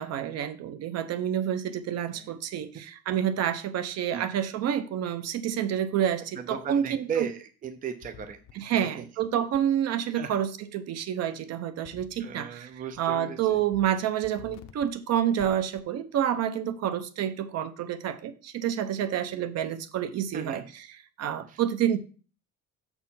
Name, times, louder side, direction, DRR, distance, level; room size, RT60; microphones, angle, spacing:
voice 1, 0.0-7.3 8.5-12.7 13.0-20.6 20.9-22.0, right 10 dB, 55° right, 12 dB, 0.8 m, -28 dB
voice 2, 6.4-8.9 10.1-10.4 12.2-13.6 20.3-20.6 21.5-21.6, right 7 dB, 30° right, 8 dB, 0.6 m, -36 dB
sound 1, 8.0-8.5 9.5-9.6 11.8-12.3 12.7-13.0 13.5-13.9 14.2-14.9 15.4-15.8, left 10 dB, 60° left, 0.8 m, -49 dB
6.9 x 4.5 x 5.6 m, 0.38 s
cardioid pair, 150°, 30 cm